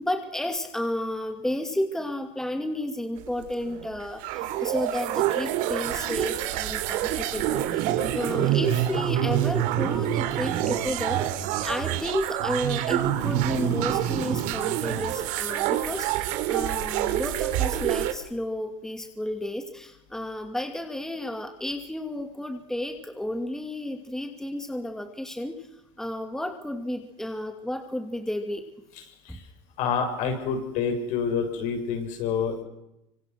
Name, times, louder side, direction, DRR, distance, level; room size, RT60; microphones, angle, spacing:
voice 1, 0.0-25.7 26.0-28.6 29.3-29.4, left 1 dB, 5° left, 5 dB, 2.7 m, -32 dB
sound 1, 3.2-18.1, right 12 dB, 65° right, 2.9 m, -27 dB
voice 2, 29.8-32.6, left 6 dB, 60° left, 5 dB, 7.2 m, -27 dB
26.0 x 25.0 x 6.3 m, 0.87 s
supercardioid pair, 110°, 15 cm